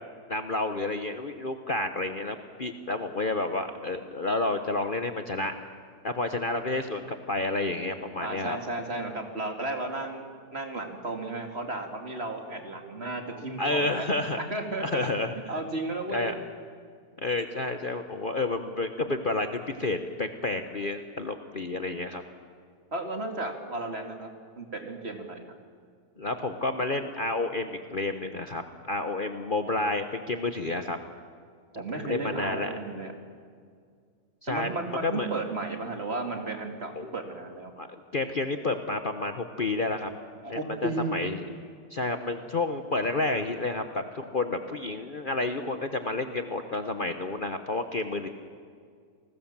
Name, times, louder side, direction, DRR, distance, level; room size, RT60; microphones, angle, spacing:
voice 1, 0.3-5.5 6.0-8.6 13.6-14.4 14.8-15.5 16.1-16.3 17.2-22.2 26.2-31.0 31.7-32.7 34.4-34.7 35.0-35.3 36.9-37.1 37.8-37.9 38.1-40.1 40.5-41.5 41.9-48.3, left 2 dB, 35° left, 7 dB, 1.1 m, -30 dB
voice 2, 8.2-14.0 14.5-15.1 15.5-16.3 22.9-24.3 24.6-25.5 31.7-33.1 34.5-37.7 40.4-41.2, right 2 dB, 40° right, 4 dB, 2.6 m, -34 dB
29.0 x 19.5 x 7.4 m, 2.1 s
omnidirectional pair, 1.7 m